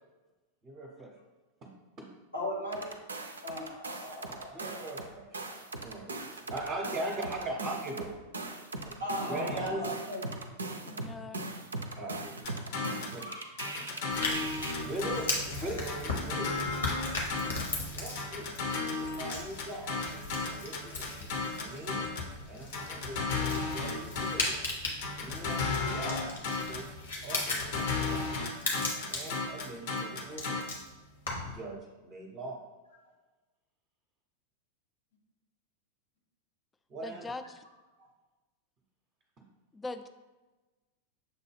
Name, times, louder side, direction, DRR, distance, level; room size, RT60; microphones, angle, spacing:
voice 1, 0.6-1.1 1.6-1.7 2.0-2.1 4.3-8.2 8.8-9.8 12.0-12.4 13.1-13.2 13.6-13.8 14.7-16.5 17.9-18.5 18.9-21.3 21.6-22.1 22.5-23.2 23.7-24.5 25.0-26.9 27.2-28.5 29.1-30.6 31.4-32.6 36.9-37.3, right 1 dB, 30° right, -1 dB, 0.7 m, -40 dB
voice 2, 2.3-2.9 3.4-4.9 5.5-5.6 9.0-10.2 13.2-13.8, left 1 dB, 85° left, -3 dB, 1.4 m, -38 dB
sound 1, 2.7-5.1 5.3-14.0 14.3-14.7, right 2 dB, 75° right, 0.4 m, -39 dB
voice 3, 10.8-11.4 37.0-37.6 39.7-40.1, left 3 dB, 15° left, 9 dB, 0.3 m, -41 dB
sound 2, 12.4-13.2 13.6-15.5 15.9-17.8 18.2-22.3 22.7-24.6 25.0-26.9 27.3-30.6, left 4 dB, 50° left, 0.7 m, -34 dB
sound 3, 14.1-31.6, left 2 dB, 65° left, 1.0 m, -38 dB
6.4 x 2.2 x 3.3 m, 1.2 s
figure-of-eight pair, 90°, 0 cm